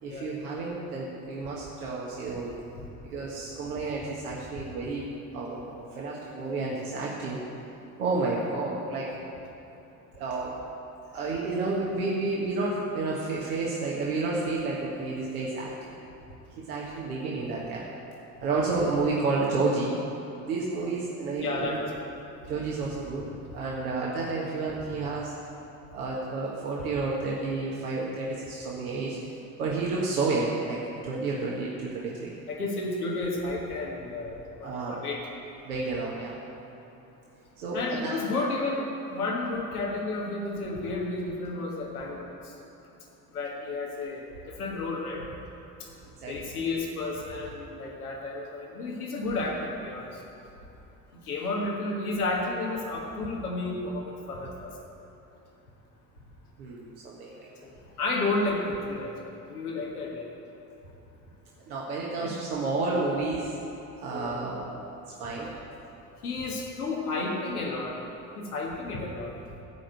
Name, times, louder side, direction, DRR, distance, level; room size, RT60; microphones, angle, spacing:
voice 1, 0.0-2.6 3.1-5.1 5.3-7.4 8.0-9.1 10.1-10.5 11.1-15.9 16.7-17.8 18.4-19.9 20.4-21.8 22.5-23.3 23.5-25.3 25.9-29.2 29.6-32.3 34.6-35.0 35.6-36.3 37.6-38.2 46.2-46.3 56.6-57.5 61.7-63.5 64.0-64.8 65.2-65.5, right 3 dB, 80° right, -5 dB, 1.5 m, -30 dB
voice 2, 21.4-22.1 31.6-31.8 32.5-35.2 37.7-38.9 39.1-42.3 43.3-45.2 46.3-50.1 51.3-54.7 57.4-57.7 58.0-59.1 59.5-60.3 62.2-62.3 64.1-64.5 66.2-67.9 68.3-69.3, left 2 dB, 90° left, -2 dB, 1.6 m, -32 dB
15.5 x 5.2 x 7.7 m, 2.9 s
hypercardioid pair, 60°, 43 cm